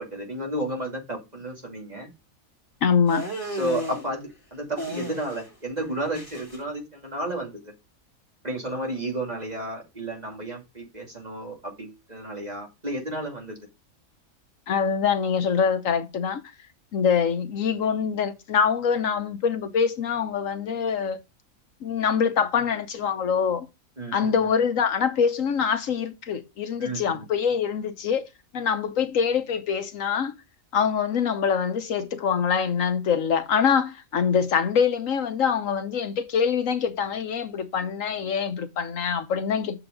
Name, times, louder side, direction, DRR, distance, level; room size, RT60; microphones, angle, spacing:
voice 1, 0.0-2.1 3.4-7.7 8.4-13.6 24.0-24.3 26.8-27.2, right 1 dB, 30° right, 2.5 m, -32 dB
voice 2, 2.8-3.2 14.7-16.4 16.9-21.2 21.8-23.7 24.1-28.3 28.5-30.3 30.7-39.8, left 6 dB, 70° left, 1.2 m, -24 dB
sound 1, 3.1-4.0 4.8-5.5 5.8-6.6, equal, 15° left, 2.6 m, -33 dB
7.8 x 6.9 x 3.7 m
omnidirectional pair, 1.5 m